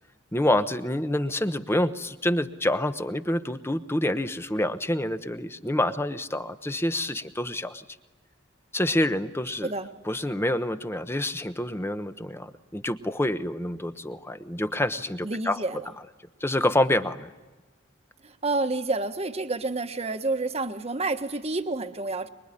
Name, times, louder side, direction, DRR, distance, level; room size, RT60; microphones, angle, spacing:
voice 1, 0.3-7.8 8.7-9.7 10.1-15.6 16.4-17.3, left 1 dB, 10° left, 10 dB, 0.9 m, -27 dB
voice 2, 15.2-15.9 18.2-22.3, right 3 dB, 30° right, 7 dB, 1.3 m, -29 dB
24.5 x 23.0 x 9.9 m, 1.2 s
head